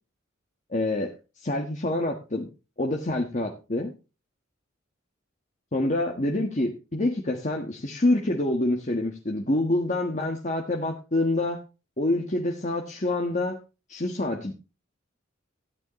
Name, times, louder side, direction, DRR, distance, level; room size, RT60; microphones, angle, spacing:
voice 1, 0.7-1.1 1.4-2.5 2.8-3.9 5.7-11.6 12.0-13.6 13.9-14.5, left 2 dB, 35° left, 2 dB, 1.4 m, -26 dB
13.5 x 9.5 x 3.1 m, 0.30 s
head